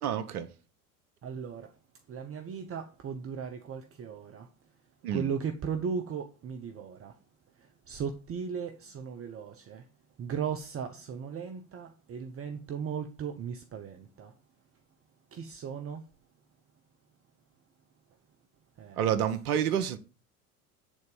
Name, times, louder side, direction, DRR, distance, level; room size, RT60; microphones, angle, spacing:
voice 1, 0.0-0.5 5.0-5.3 19.0-20.0, right 9 dB, 75° right, 1.0 m, -29 dB
voice 2, 1.2-9.9 10.2-14.4 15.3-16.1 18.8-19.3, right 6 dB, 30° right, 0.8 m, -37 dB
8.7 x 4.0 x 5.4 m
hypercardioid pair, 80°, 46 cm